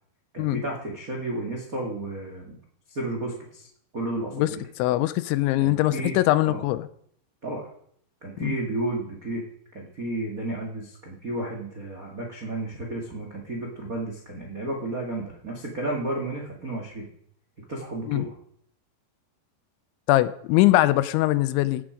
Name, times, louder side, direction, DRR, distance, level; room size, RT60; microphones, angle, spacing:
voice 1, 0.3-2.6 2.9-3.7 3.9-4.6 5.6-6.2 6.4-6.6 7.4-7.7 8.2-9.4 9.7-17.1 17.7-18.3, right 2 dB, 65° right, 0.8 m, -32 dB
voice 2, 4.8-6.9 8.4-8.6 18.1-18.3 20.1-21.8, left 17 dB, 90° left, 3.1 m, -22 dB
16.5 x 7.6 x 5.1 m
omnidirectional pair, 5.3 m